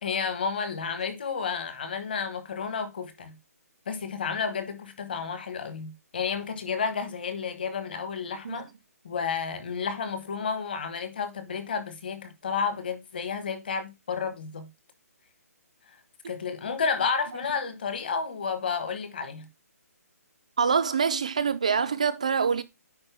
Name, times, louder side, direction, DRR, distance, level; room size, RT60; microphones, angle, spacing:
voice 1, 0.0-3.4 3.9-8.7 9.0-14.7 16.3-19.5, left 5 dB, 35° left, 1.3 m, -31 dB
voice 2, 20.6-22.6, right 6 dB, 25° right, 0.3 m, -25 dB
9.7 x 4.4 x 3.4 m
hypercardioid pair, 180°, 9 cm